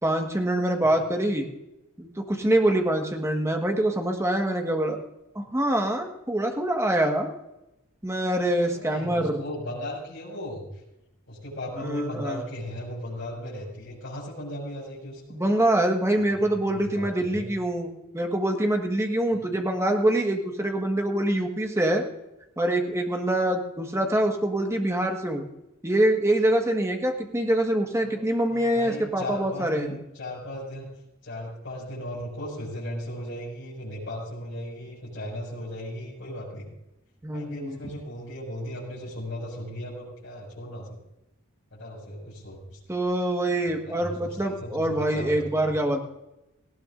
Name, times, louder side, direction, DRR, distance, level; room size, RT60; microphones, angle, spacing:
voice 1, 0.0-1.5 2.0-5.0 5.3-7.3 8.0-9.4 11.8-12.4 15.3-22.0 22.6-25.4 25.8-30.0 37.2-37.8 42.9-46.0, right 1 dB, 15° right, 3 dB, 1.5 m, -25 dB
voice 2, 8.7-10.7 11.3-15.4 16.5-17.4 19.3-19.5 28.0-28.2 28.5-30.9 31.2-36.7 37.3-40.9 41.7-42.8 43.7-45.3, left 1 dB, 60° left, -7 dB, 5.9 m, -36 dB
18.5 x 16.5 x 2.6 m, 0.90 s
head